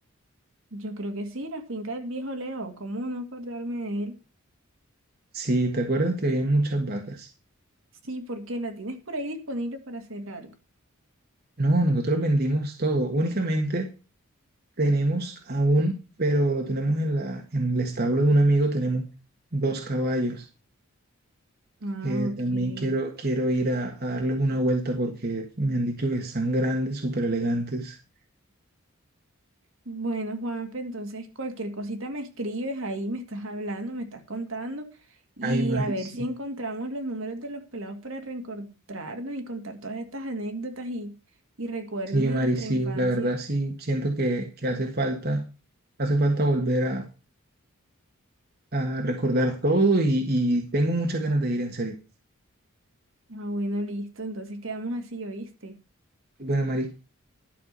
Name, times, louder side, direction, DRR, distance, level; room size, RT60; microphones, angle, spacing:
voice 1, 0.7-4.2 8.0-10.5 21.8-23.0 29.9-34.9 35.4-41.1 41.6-43.3 53.3-55.7, right 1 dB, 65° right, 2.2 m, -33 dB
voice 2, 5.3-7.3 11.6-13.9 14.8-19.1 19.5-20.5 22.0-28.0 35.4-36.3 42.1-45.4 46.0-47.0 48.7-52.0 56.4-56.9, right 1 dB, 45° right, 1.6 m, -25 dB
12.0 x 6.0 x 6.8 m
head